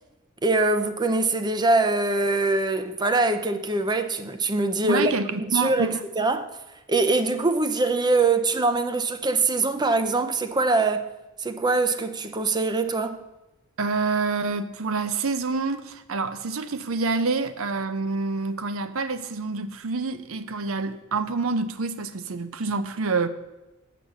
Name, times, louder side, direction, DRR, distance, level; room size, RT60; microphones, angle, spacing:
voice 1, 0.4-5.1 5.5-6.4 6.9-11.0 11.4-13.2, right 3 dB, 20° right, 0.6 m, -23 dB
voice 2, 4.8-6.0 13.8-23.3, right 4 dB, 65° right, 0.7 m, -27 dB
8.1 x 6.0 x 7.1 m
head